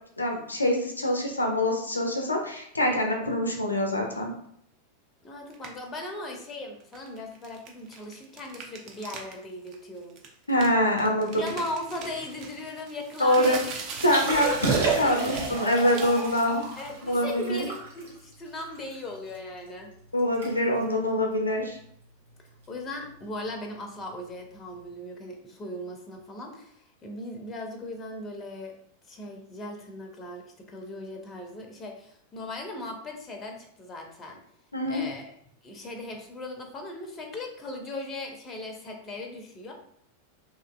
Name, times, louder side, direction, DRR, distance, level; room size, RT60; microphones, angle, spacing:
voice 1, 0.2-4.3 10.5-11.5 13.2-13.6 14.0-16.6 17.0-17.6 20.1-21.8 34.7-35.0, left 1 dB, 80° left, 2 dB, 0.4 m, -25 dB
voice 2, 5.2-10.2 11.4-13.8 14.1-15.3 16.8-19.9 22.4-28.8 29.1-34.4 34.9-35.3 35.6-39.7, left 2 dB, 25° left, 3 dB, 0.5 m, -38 dB
sound 1, 5.5-5.9 6.8-9.3 9.7-9.8 10.2-17.1, right 5 dB, 40° right, 0.5 m, -38 dB
Liquid, 14.0-19.4 19.8-19.9 20.2-20.5 20.8-21.0 21.6-21.8 23.3-23.4, right 4 dB, 65° right, 0.9 m, -32 dB
2.7 x 2.4 x 2.3 m, 0.67 s
figure-of-eight pair, 90°, 0 cm